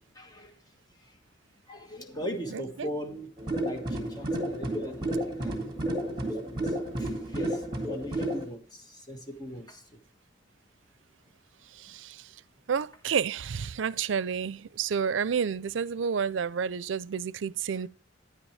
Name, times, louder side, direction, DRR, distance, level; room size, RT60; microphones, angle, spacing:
voice 1, 0.2-0.5 1.0-1.2 1.7-3.3 3.6-10.0, equal, 20° left, 1.6 m, -40 dB
voice 2, 2.5-2.9 12.7-17.9, right 6 dB, 90° right, 0.4 m, -30 dB
sound 1, 3.4-8.5, right 1 dB, 25° right, 2.0 m, -31 dB
9.9 x 9.5 x 3.2 m
head